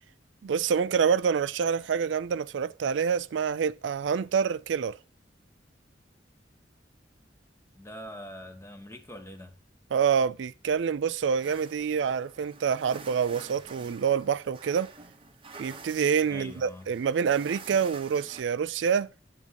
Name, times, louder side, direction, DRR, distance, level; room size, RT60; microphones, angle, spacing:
voice 1, 0.4-5.0 9.9-14.9 15.6-19.1, right 7 dB, 85° right, 0.4 m, -27 dB
voice 2, 7.7-9.6 16.2-16.9, equal, 15° left, 1.2 m, -43 dB
sound 1, 11.4-18.4, right 4 dB, 30° right, 0.9 m, -48 dB
9.5 x 7.3 x 2.9 m
head